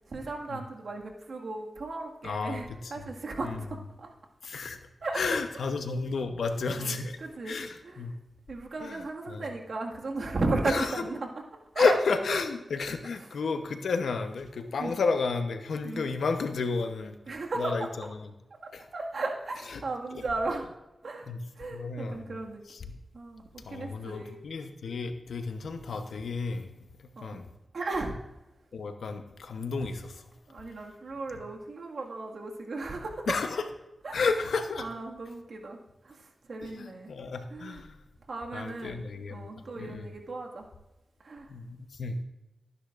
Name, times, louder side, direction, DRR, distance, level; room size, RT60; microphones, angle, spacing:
voice 1, 0.1-4.1 5.0-5.4 6.7-6.9 7.2-7.6 7.8-8.0 8.5-11.3 11.7-12.0 12.3-12.4 14.8-14.9 15.8-16.0 17.3-17.9 18.6-20.7 21.0-21.3 21.6-22.6 23.1-24.4 27.2-27.4 27.7-28.1 30.5-33.3 34.0-34.2 34.8-37.1 37.5-37.8 38.3-39.0 39.3-40.7 41.2-41.5, right 3 dB, 75° right, 0 dB, 1.9 m, -35 dB
voice 2, 2.2-2.9 3.4-3.6 4.4-4.8 5.1-8.2 8.8-9.5 10.6-11.0 11.8-17.1 17.6-18.3 18.7-18.9 19.7-19.8 20.1-20.2 21.3-21.4 21.7-22.3 22.7-22.9 23.6-27.5 28.7-30.3 33.3-33.6 34.1-34.8 36.6-38.0 38.5-40.1 41.5-42.2, left 4 dB, 85° left, 7 dB, 0.9 m, -32 dB
19.0 x 9.9 x 2.5 m, 0.99 s
cardioid pair, 40°, 0 cm